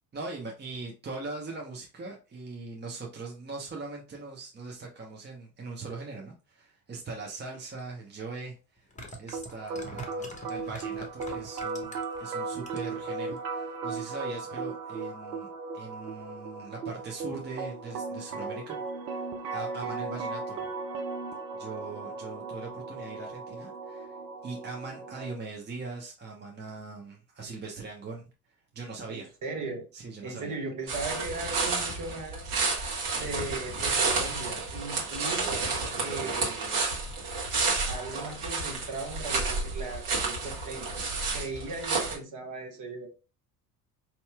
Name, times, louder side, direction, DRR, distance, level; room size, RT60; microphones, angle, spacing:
voice 1, 0.1-8.9 9.2-15.5 15.7-18.8 19.1-19.2 19.5-20.7 21.5-24.1 24.4-28.2 28.7-29.3 29.9-30.5, right 3 dB, 20° right, 1.0 m, -41 dB
sound 1, 7.8-7.9 8.8-12.2 12.6-13.1 13.4-13.5, equal, 15° left, 0.9 m, -43 dB
sound 2, 9.3-25.3, right 4 dB, 85° right, 0.6 m, -37 dB
voice 2, 29.1-29.9 30.2-32.6 33.2-35.7 36.0-36.9 37.8-40.9 41.3-43.1, right 3 dB, 40° right, 1.3 m, -38 dB
sound 3, 30.9-42.2, right 3 dB, 60° right, 1.5 m, -30 dB
4.6 x 2.9 x 2.3 m
figure-of-eight pair, 60°, 47 cm